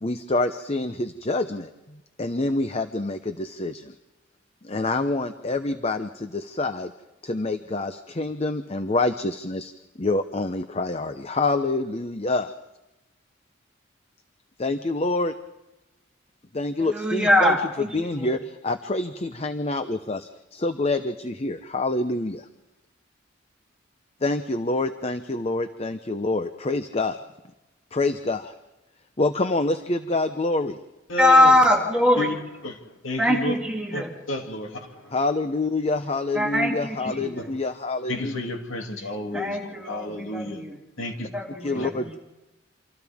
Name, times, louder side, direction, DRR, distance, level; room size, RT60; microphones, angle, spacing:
voice 1, 0.0-3.9 4.6-6.9 7.2-9.7 10.0-12.5 14.6-15.3 16.5-22.5 24.2-27.2 27.9-28.5 29.2-30.8 35.1-38.3 41.6-42.2, left 2 dB, 30° left, 9 dB, 0.7 m, -27 dB
voice 2, 16.8-18.3 31.2-32.3 33.2-34.1 36.3-37.5 39.3-40.7 41.3-42.2, left 1 dB, 5° right, -1 dB, 2.7 m, -22 dB
voice 3, 31.1-31.6 32.2-32.3 32.6-33.6 33.9-35.2 37.4-37.5 38.1-40.6 41.0-41.3 41.7-41.9, left 1 dB, 85° left, 2 dB, 2.5 m, -31 dB
28.5 x 26.5 x 3.6 m, 1.0 s
head